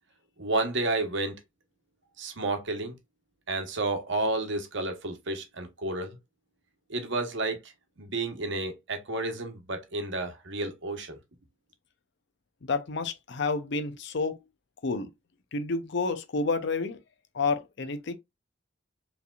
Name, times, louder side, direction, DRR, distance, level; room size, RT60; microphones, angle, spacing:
voice 1, 0.4-1.4 2.2-3.0 3.5-6.2 6.9-7.7 8.0-11.2, right 2 dB, 60° right, 1.0 m, -31 dB
voice 2, 12.6-14.4 14.8-15.1 15.5-17.0 17.3-18.1, left 4 dB, 60° left, 0.6 m, -29 dB
4.7 x 3.4 x 2.4 m
head